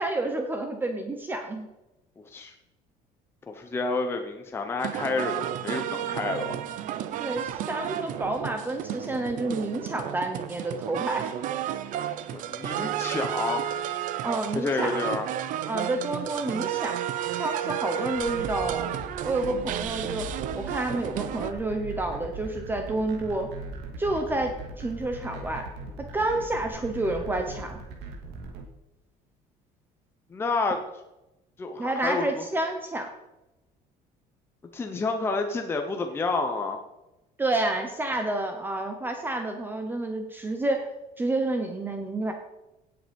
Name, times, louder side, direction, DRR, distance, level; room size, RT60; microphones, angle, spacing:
voice 1, 0.0-1.7 7.2-11.3 14.2-15.0 15.7-17.0 17.4-18.9 19.2-20.3 20.5-23.5 24.0-25.7 26.1-27.8 31.8-33.1 37.4-40.9 41.2-42.3, right 2 dB, 10° right, 5 dB, 0.9 m, -29 dB
voice 2, 3.5-6.6 12.3-13.6 14.5-15.3 30.3-30.8 31.6-32.4 34.7-36.8, left 3 dB, 15° left, 4 dB, 0.9 m, -29 dB
sound 1, 4.8-21.5, right 11 dB, 50° right, 0.8 m, -32 dB
sound 2, 18.2-28.6, right 3 dB, 80° right, 2.8 m, -39 dB
17.5 x 7.9 x 5.3 m, 0.97 s
cardioid pair, 175°, 17 cm